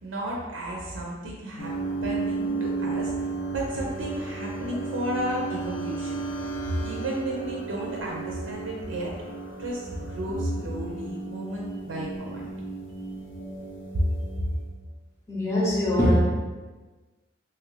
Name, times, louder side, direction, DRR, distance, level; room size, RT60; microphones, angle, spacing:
voice 1, 0.0-1.7 2.0-6.5 6.8-9.2 9.6-12.5 13.9-14.1, right 1 dB, 85° right, -2 dB, 0.5 m, -33 dB
sound 1, 1.6-14.7, right 3 dB, 75° left, 0.5 m, -34 dB
voice 2, 15.3-16.2, left 1 dB, 15° left, -7 dB, 0.5 m, -22 dB
2.9 x 2.4 x 3.1 m, 1.3 s
head